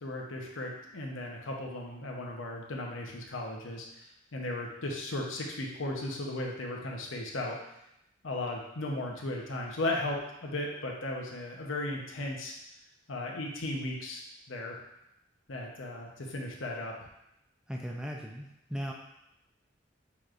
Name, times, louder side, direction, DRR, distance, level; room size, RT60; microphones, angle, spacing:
voice 1, 0.0-3.9 4.3-7.6 8.2-12.5 13.1-14.2 14.5-14.8 15.5-16.9, left 1 dB, 90° left, 0 dB, 0.8 m, -36 dB
voice 2, 17.7-18.9, equal, 5° right, -1 dB, 0.4 m, -37 dB
6.9 x 3.1 x 2.5 m, 0.83 s
head